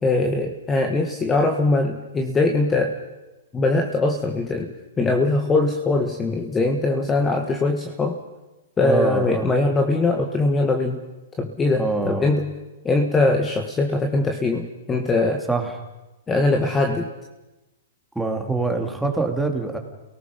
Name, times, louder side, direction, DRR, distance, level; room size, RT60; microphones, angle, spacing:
voice 1, 0.0-2.9 3.5-8.2 8.8-11.0 11.4-12.5 12.8-15.4 16.3-17.1, left 2 dB, 15° left, 3 dB, 1.9 m, -21 dB
voice 2, 8.8-9.5 11.8-12.3 15.5-15.8 18.1-19.8, right 3 dB, 5° right, 3 dB, 3.1 m, -24 dB
29.0 x 18.5 x 5.4 m, 1.0 s
hypercardioid pair, 130°, 0 cm